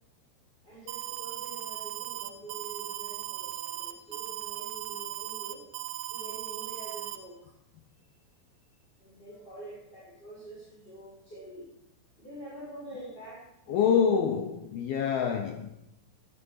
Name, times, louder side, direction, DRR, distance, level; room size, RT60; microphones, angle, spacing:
voice 1, 0.6-5.6 6.1-7.5 9.0-11.6 12.2-14.0, right 1 dB, 10° left, 6.8 m, -46 dB
Alarm, 0.9-7.2, right 14 dB, 85° right, 3.7 m, -37 dB
voice 2, 13.7-15.7, left 7 dB, 80° left, 2.2 m, -26 dB
20.5 x 11.5 x 5.6 m
omnidirectional pair, 5.7 m